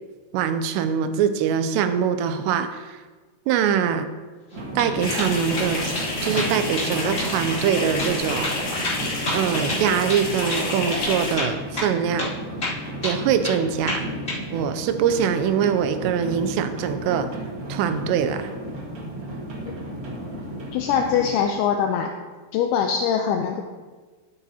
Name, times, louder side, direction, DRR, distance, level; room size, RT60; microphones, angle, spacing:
voice 1, 0.3-3.0 3.5-4.1 4.8-5.9 6.2-8.6 9.3-12.3 13.0-14.1 14.5-17.3 17.7-18.5, right 8 dB, 85° right, 9 dB, 2.7 m, -23 dB
sound 1, 4.5-4.9 5.2-5.7 5.9-6.1 6.4-6.9 7.2-7.3 7.6-7.7 8.0-8.1 8.4-10.2 10.5-10.7 10.9-11.0 11.4-11.9 12.2-12.3 12.6-13.6 13.9-14.4, left 2 dB, 25° left, 2.1 m, -29 dB
sound 2, 4.5-21.3, right 1 dB, 50° right, 1.3 m, -34 dB
sound 3, 5.0-11.3, left 2 dB, 45° left, 2.7 m, -29 dB
voice 2, 20.7-22.1 22.5-23.6, left 7 dB, 80° left, 3 dB, 2.4 m, -22 dB
13.0 x 10.0 x 2.8 m, 1.3 s
omnidirectional pair, 5.0 m